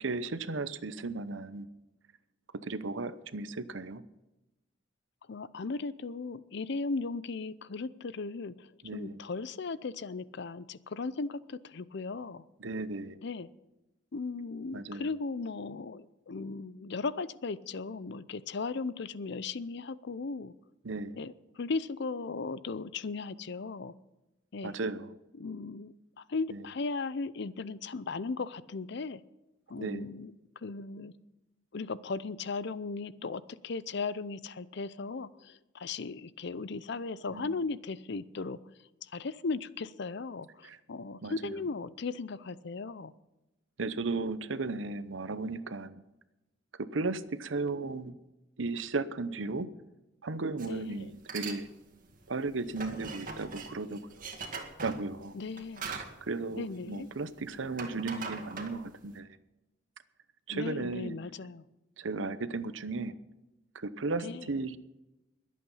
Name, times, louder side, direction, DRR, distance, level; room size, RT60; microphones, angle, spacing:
voice 1, 0.0-1.7 2.6-4.0 8.8-9.2 12.6-13.2 14.7-15.1 20.8-21.2 24.6-25.2 26.5-26.7 29.8-30.1 37.3-37.6 40.6-40.8 41.2-41.7 43.8-46.0 46.8-48.2 48.6-49.7 50.2-51.7 52.3-54.3 54.8-55.4 55.9-59.4 60.5-61.2 62.0-63.1 63.7-64.8, right 3 dB, 75° right, 13 dB, 0.8 m, -35 dB
voice 2, 5.3-8.7 8.9-12.4 13.2-13.5 14.1-20.5 21.2-23.9 24.5-24.7 25.4-25.9 26.3-29.2 29.7-30.3 30.6-31.1 31.7-38.6 39.1-43.1 50.6-51.1 55.4-55.8 56.6-57.1 60.5-61.6 64.2-64.4, left 4 dB, 60° left, 17 dB, 0.6 m, -37 dB
sound 1, 50.6-50.8 51.2-51.6 52.0-57.3 57.6-59.1, right 4 dB, 45° right, 2.0 m, -41 dB
21.5 x 8.5 x 5.6 m, 1.0 s
head